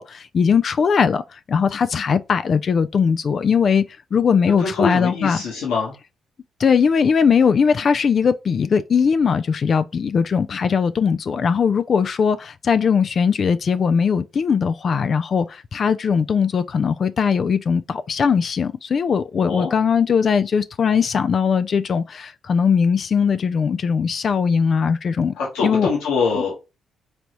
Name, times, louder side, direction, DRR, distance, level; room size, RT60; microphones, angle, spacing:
voice 1, 0.0-3.8 4.1-5.4 6.6-25.3 25.6-25.9 26.3-26.4, left 6 dB, 50° left, 0.3 m, -19 dB
voice 2, 4.6-5.9 19.4-19.7 25.4-26.6, left 4 dB, 70° left, 1.1 m, -23 dB
3.9 x 3.3 x 3.0 m
hypercardioid pair, 40°, 0 cm